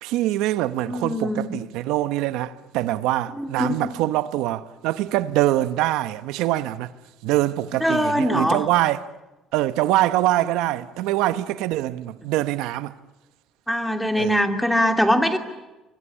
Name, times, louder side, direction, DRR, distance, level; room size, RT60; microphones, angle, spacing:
voice 1, 0.0-6.9 7.2-9.0 9.5-12.9 14.2-14.4, right 15 dB, 90° right, 0.8 m, -24 dB
voice 2, 0.9-1.5 3.4-3.9 7.8-8.6 13.7-15.4, equal, ahead, 2.7 m, -22 dB
25.0 x 23.0 x 10.0 m
cardioid pair, 120°, 0 cm